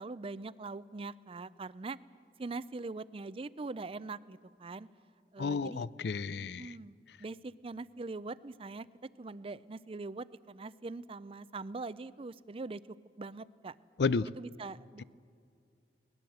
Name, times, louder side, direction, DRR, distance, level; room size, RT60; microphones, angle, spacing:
voice 1, 0.0-2.0 2.4-4.9 5.3-5.8 6.4-8.9 9.2-12.8 13.2-13.8 14.4-15.0, right 3 dB, 30° right, 0.5 m, -42 dB
voice 2, 5.4-6.8 14.0-14.3, left 4 dB, 70° left, 0.5 m, -32 dB
22.5 x 19.5 x 7.9 m
head